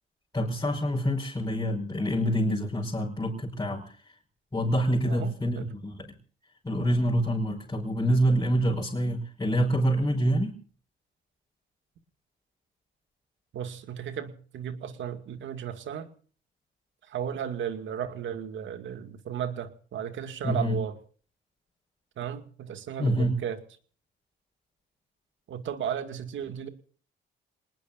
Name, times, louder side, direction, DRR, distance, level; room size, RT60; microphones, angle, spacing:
voice 1, 0.3-3.9 4.5-6.1 6.6-10.6 20.4-20.8 23.0-23.3, equal, 20° left, -4 dB, 5.2 m, -26 dB
voice 2, 5.1-5.7 13.5-16.1 17.1-21.0 22.2-23.6 25.5-26.7, right 8 dB, 75° right, 8 dB, 2.3 m, -35 dB
27.5 x 20.0 x 2.6 m, 0.43 s
cardioid pair, 90°, 20 cm